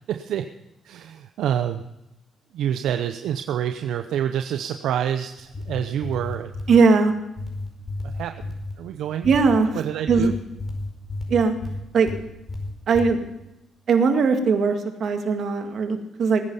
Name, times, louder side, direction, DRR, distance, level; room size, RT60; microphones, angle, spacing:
voice 1, 0.1-0.4 0.8-1.8 2.5-6.5 8.0-9.3 9.7-10.4, right 9 dB, 80° right, 7 dB, 0.7 m, -27 dB
sound 1, 5.4-6.8 7.4-8.8 9.2-9.6 10.1-12.2 12.5-13.1, left 2 dB, 35° left, 4.8 m, -32 dB
voice 2, 6.7-7.1 9.2-9.7 10.1-10.3 11.3-11.5 11.9-12.1 12.9-13.3 13.9-16.4, right 5 dB, 60° right, 5 dB, 2.0 m, -19 dB
20.0 x 9.7 x 5.5 m, 0.89 s
cardioid pair, 90°, 0 cm